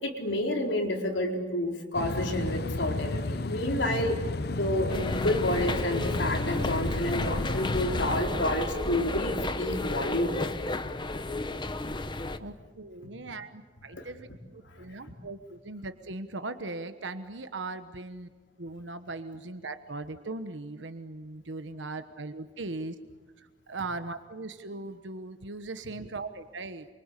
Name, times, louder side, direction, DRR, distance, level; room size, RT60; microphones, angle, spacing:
voice 1, 0.0-4.2 4.5-10.4 10.8-10.9 13.9-14.0 14.8-14.9, left 1 dB, 85° left, 2 dB, 4.4 m, -29 dB
sound 1, 1.9-8.2, left 2 dB, 60° left, 0.8 m, -32 dB
sound 2, 4.9-12.4, left 2 dB, 25° left, 1.0 m, -32 dB
voice 2, 12.4-14.3 14.5-18.3 18.6-22.9 23.4-26.9, right 3 dB, 85° right, 9 dB, 1.2 m, -39 dB
27.5 x 25.0 x 8.4 m, 1.4 s
head